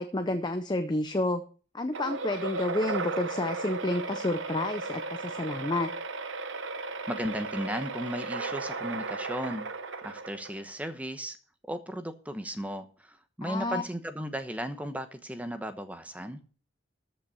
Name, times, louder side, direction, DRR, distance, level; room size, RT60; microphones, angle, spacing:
voice 1, 0.0-1.4 1.7-5.9 13.4-13.8, left 1 dB, 20° left, 0.6 m, -30 dB
sound 1, 1.9-10.7, right 3 dB, 75° right, 0.9 m, -35 dB
voice 2, 7.1-11.4 11.7-16.4, equal, 5° right, 1.0 m, -36 dB
13.5 x 5.4 x 6.9 m
head